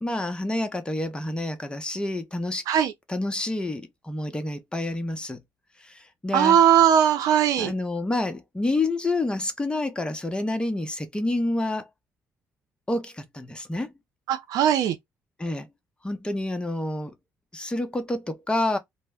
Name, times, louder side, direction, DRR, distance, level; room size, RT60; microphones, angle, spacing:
voice 1, 0.0-2.6 3.1-5.4 5.8-6.6 7.6-11.9 12.9-13.9 15.4-15.7 16.0-17.1 17.5-18.8, left 2 dB, 15° left, 0.7 m, -28 dB
voice 2, 6.3-7.7 14.3-15.0, right 9 dB, 80° right, 0.5 m, -19 dB
2.1 x 2.0 x 3.5 m
supercardioid pair, 65°, 6 cm